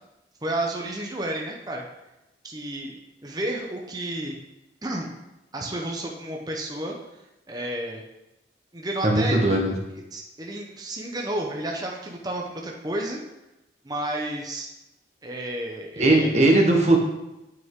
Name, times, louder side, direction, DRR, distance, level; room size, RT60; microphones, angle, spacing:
voice 1, 0.4-1.8 2.4-4.4 4.8-5.1 5.5-6.9 7.5-8.0 8.7-9.4 10.1-13.2 13.8-14.7 15.2-16.3, right 1 dB, 20° right, 0 dB, 0.8 m, -31 dB
voice 2, 9.0-9.7 16.0-17.0, right 2 dB, 40° right, 1 dB, 1.3 m, -19 dB
8.0 x 6.4 x 3.7 m, 0.94 s
head